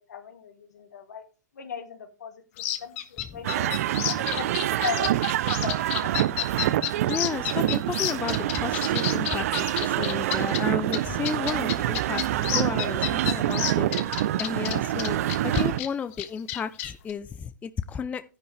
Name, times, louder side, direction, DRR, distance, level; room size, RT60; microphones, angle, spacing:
voice 1, 0.1-1.2 1.5-2.4 2.8-3.8 4.1-4.5 4.8-5.2 5.4-6.1 14.7-15.0, left 6 dB, 65° left, 2.2 m, -37 dB
sound 1, 2.6-10.6 10.9-11.0 11.2-15.9 16.1-17.1, left 13 dB, 50° left, 1.4 m, -30 dB
sound 2, 3.4-15.8, right 13 dB, 55° right, 0.6 m, -26 dB
voice 2, 7.1-13.9 14.4-18.2, left 6 dB, 15° left, 0.5 m, -33 dB
12.0 x 10.5 x 3.4 m
figure-of-eight pair, 110°, 10 cm